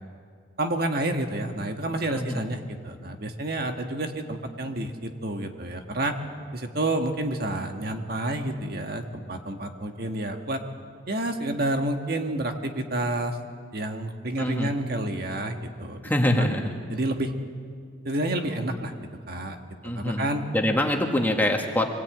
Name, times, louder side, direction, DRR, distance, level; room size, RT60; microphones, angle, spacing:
voice 1, 0.6-6.1 6.5-10.6 11.1-13.4 13.7-16.0 16.4-16.5 16.9-17.3 18.0-18.9 19.3-19.6 19.9-20.4, right 1 dB, 55° right, 4 dB, 1.6 m, -29 dB
voice 2, 2.1-2.4 14.4-14.7 16.0-16.7 19.8-21.9, left 1 dB, 10° left, 2 dB, 1.9 m, -25 dB
24.5 x 18.0 x 9.0 m, 2.1 s
head